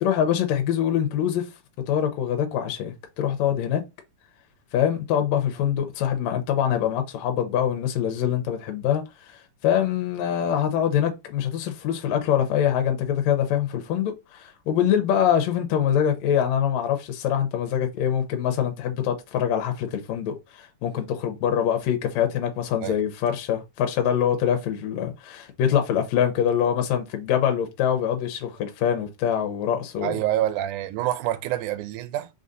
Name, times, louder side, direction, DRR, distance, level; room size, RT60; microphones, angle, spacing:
voice 1, 0.0-1.5 1.9-3.8 4.7-9.0 9.6-30.2, left 9 dB, 75° left, 1.9 m, -24 dB
voice 2, 30.0-32.3, right 13 dB, 90° right, 2.1 m, -27 dB
4.0 x 3.8 x 2.6 m
omnidirectional pair, 3.5 m